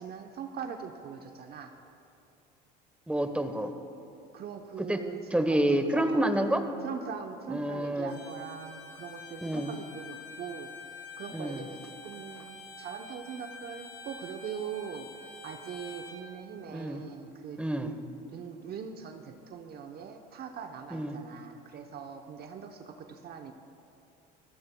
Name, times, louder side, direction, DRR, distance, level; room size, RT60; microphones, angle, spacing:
voice 1, 0.0-1.7 4.3-5.2 5.5-5.6 5.9-6.3 6.8-10.7 11.2-15.1 15.4-17.6 18.3-23.5, right 7 dB, 50° right, 5 dB, 0.9 m, -41 dB
voice 2, 3.1-3.7 4.8-5.0 5.3-6.6 7.5-8.1 9.4-9.7 11.3-11.6 16.7-17.0 17.6-17.9 20.9-21.1, right 1 dB, 5° right, 7 dB, 1.1 m, -28 dB
Bowed string instrument, 8.1-16.2, left 3 dB, 60° left, 3.3 m, -47 dB
26.0 x 15.5 x 2.3 m, 2.8 s
supercardioid pair, 85°, 21 cm